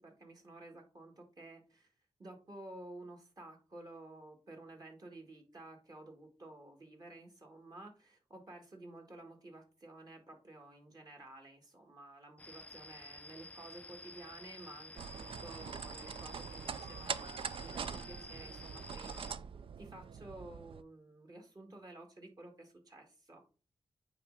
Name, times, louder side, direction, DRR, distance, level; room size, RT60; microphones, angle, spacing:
voice 1, 0.0-1.9 2.2-19.2 19.8-23.4, right 2 dB, 40° right, 2 dB, 1.9 m, -52 dB
sound 1, 12.4-19.3, left 2 dB, 15° left, 0.4 m, -51 dB
sound 2, 15.0-20.8, right 7 dB, 60° right, 0.4 m, -43 dB
8.7 x 3.3 x 3.9 m, 0.35 s
cardioid pair, 85°, 10 cm